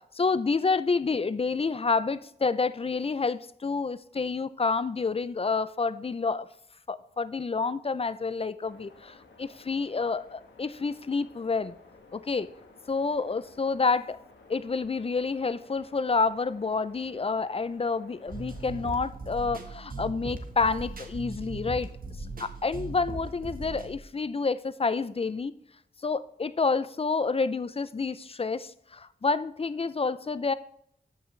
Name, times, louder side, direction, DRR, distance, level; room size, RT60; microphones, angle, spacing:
voice 1, 0.0-6.5 6.9-11.7 12.1-12.5 12.9-14.2 14.5-21.9 22.4-25.5 26.0-30.5, left 4 dB, 30° left, 15 dB, 0.4 m, -29 dB
sound 1, 8.6-19.0, left 3 dB, 85° left, 1.3 m, -55 dB
sound 2, 18.3-24.0, right 2 dB, 50° right, 1.3 m, -38 dB
13.0 x 5.7 x 3.2 m, 0.71 s
wide cardioid pair, 75°, 18 cm